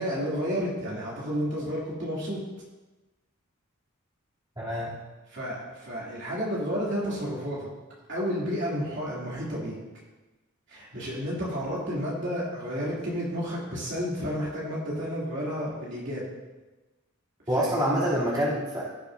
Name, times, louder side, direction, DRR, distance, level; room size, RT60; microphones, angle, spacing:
voice 1, 0.0-2.4 5.3-7.7 8.1-9.8 10.7-16.3 17.5-17.8, equal, 55° right, -7 dB, 2.8 m, -31 dB
voice 2, 4.6-4.9 17.5-18.8, equal, 20° right, -9 dB, 3.0 m, -26 dB
17.0 x 6.8 x 2.7 m, 1.1 s
head